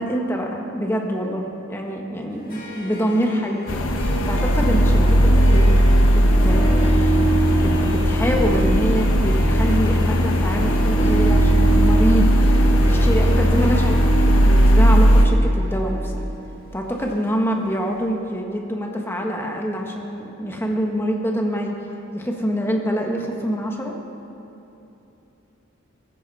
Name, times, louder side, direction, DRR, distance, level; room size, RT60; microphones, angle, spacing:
voice 1, 0.0-5.8 6.0-7.1 7.5-12.4 12.8-16.2 16.7-21.8 22.1-24.0, equal, 10° left, 1 dB, 1.3 m, -25 dB
Harp, 2.3-17.7, right 4 dB, 40° left, 2.4 m, -29 dB
sound 1, 3.7-15.3, equal, 85° left, 1.2 m, -17 dB
16.5 x 14.5 x 4.2 m, 2.9 s
head